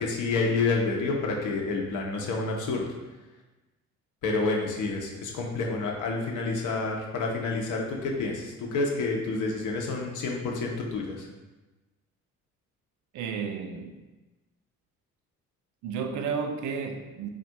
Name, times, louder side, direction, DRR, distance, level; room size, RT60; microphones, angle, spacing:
voice 1, 0.0-2.8 4.2-11.3, left 3 dB, 45° left, 0 dB, 0.7 m, -29 dB
voice 2, 13.1-14.0 15.8-17.3, right 6 dB, 45° right, 5 dB, 0.4 m, -32 dB
3.6 x 2.1 x 2.7 m, 1.1 s
hypercardioid pair, 50°, 44 cm